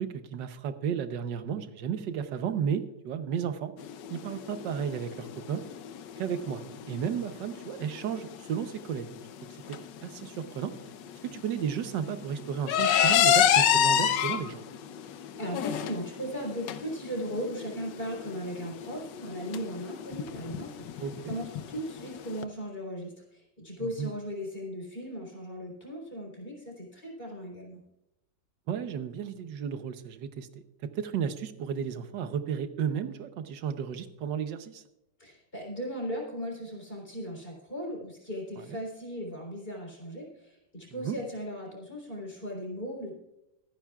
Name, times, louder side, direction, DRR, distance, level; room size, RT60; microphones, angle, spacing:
voice 1, 0.0-3.7 4.1-5.6 6.2-9.2 9.7-10.7 11.2-14.6 21.0-21.4 23.8-24.1 28.7-30.5 30.8-34.8 38.6-38.7 40.9-41.2, right 8 dB, 90° right, 10 dB, 1.5 m, -33 dB
sound 1, 3.8-22.4, left 9 dB, 85° left, 1.4 m, -29 dB
voice 2, 15.4-27.8 35.2-43.1, equal, 30° left, -1 dB, 4.0 m, -37 dB
24.0 x 10.0 x 2.4 m, 0.88 s
omnidirectional pair, 1.9 m